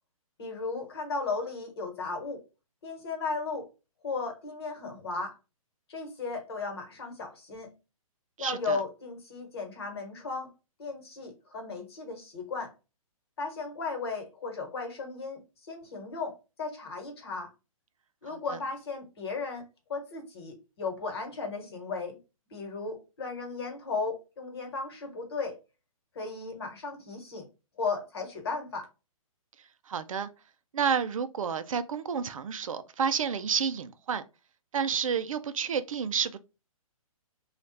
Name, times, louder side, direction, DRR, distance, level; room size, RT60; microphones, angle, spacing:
voice 1, 0.4-2.4 2.8-3.7 4.0-5.4 5.9-7.7 8.4-10.5 10.8-12.7 13.4-17.5 18.2-19.6 19.9-22.2 22.5-25.6 26.1-27.5 27.8-28.9, left 4 dB, 45° left, 1.3 m, -35 dB
voice 2, 8.4-8.8 29.9-30.3 30.7-34.2 34.7-36.4, right 7 dB, 65° right, 0.5 m, -30 dB
3.2 x 2.4 x 4.0 m
hypercardioid pair, 170°, 18 cm